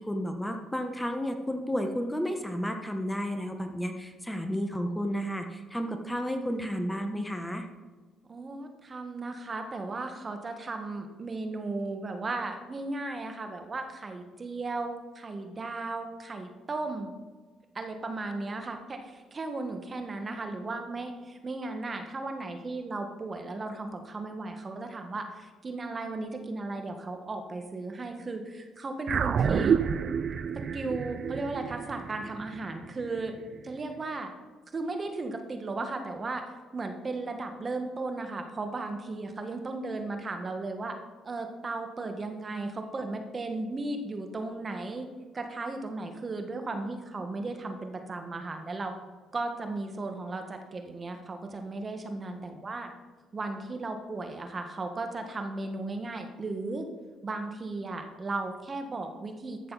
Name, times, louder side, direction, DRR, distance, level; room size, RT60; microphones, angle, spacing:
voice 1, 0.0-7.6, equal, 10° left, 5 dB, 1.2 m, -32 dB
voice 2, 8.3-17.1 17.7-29.8 30.5-33.4 33.6-34.3 34.7-36.4 36.7-41.0 41.2-45.1 45.3-48.9 49.3-52.9 53.3-56.9 57.2-59.7, right 3 dB, 35° right, 5 dB, 1.4 m, -35 dB
sound 1, 29.1-33.7, right 7 dB, 55° right, 0.5 m, -29 dB
13.5 x 6.8 x 4.1 m, 1.4 s
supercardioid pair, 65°, 0 cm